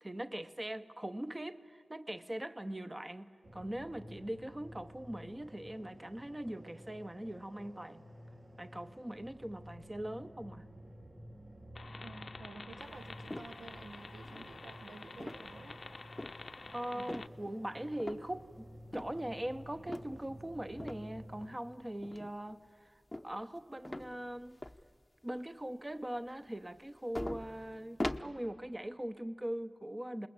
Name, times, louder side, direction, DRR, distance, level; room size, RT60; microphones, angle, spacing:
voice 1, 0.0-8.0 8.6-10.6 16.7-22.6 23.2-24.6 25.2-30.3, right 1 dB, 20° right, 0.8 m, -41 dB
sound 1, 3.4-21.4, equal, 60° right, 4.8 m, -53 dB
sound 2, 11.7-17.3, left 3 dB, 55° left, 0.7 m, -50 dB
voice 2, 12.0-15.8 16.9-17.3, right 3 dB, 80° right, 1.2 m, -52 dB
sound 3, 13.3-13.8 14.2-14.8 15.2-15.6 16.2-16.4 17.1-17.5 18.0-18.5 18.9-19.2 19.9-20.2 20.8-21.1 22.0-22.5 23.1-23.6 23.8-24.9 25.3-25.4 26.8-26.9 27.1-28.2, left 1 dB, 15° left, 0.8 m, -41 dB
27.5 x 20.5 x 8.6 m
wide cardioid pair, 90°, 0 cm